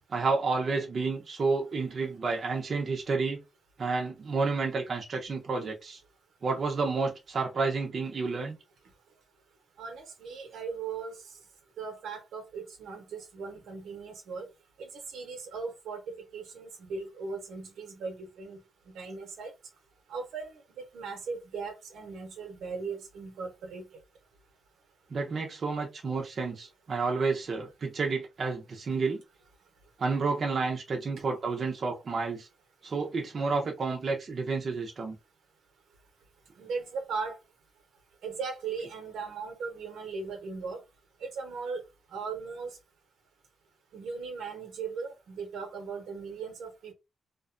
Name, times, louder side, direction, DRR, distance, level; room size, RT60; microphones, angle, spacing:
voice 1, 0.1-3.4 3.8-6.0 6.4-8.6 25.1-29.2 30.0-32.5 32.8-35.2, right 4 dB, 50° right, 0.7 m, -30 dB
voice 2, 9.8-11.2 11.8-14.5 14.8-18.6 18.9-19.5 20.1-20.5 20.9-23.8 36.6-37.4 38.2-40.8 41.2-41.8 42.1-42.7 43.9-46.9, right 5 dB, 85° right, 0.8 m, -38 dB
2.5 x 2.2 x 2.5 m
cardioid pair, 95°, 0 cm